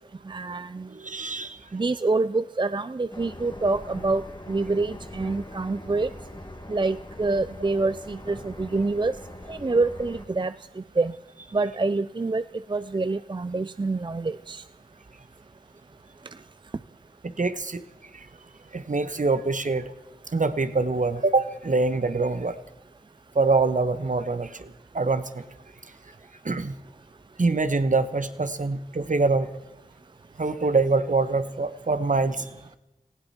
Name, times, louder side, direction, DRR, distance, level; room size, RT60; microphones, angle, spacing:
voice 1, 0.3-0.9 1.7-4.2 4.5-6.1 6.7-9.1 9.5-10.5 11.0-11.1 11.5-12.4 12.7-14.6, right 3 dB, 35° right, 14 dB, 0.5 m, -26 dB
voice 2, 0.9-1.6 17.2-17.8 18.1-18.3 18.7-19.8 20.3-22.6 23.3-24.7 24.9-25.4 26.4-26.7 27.4-29.5 30.4-32.5, right 3 dB, 60° right, 11 dB, 1.2 m, -24 dB
sound 1, 3.1-10.2, left 1 dB, 30° left, 2.3 m, -42 dB
18.5 x 16.5 x 4.3 m, 1.0 s
wide cardioid pair, 55°, 14 cm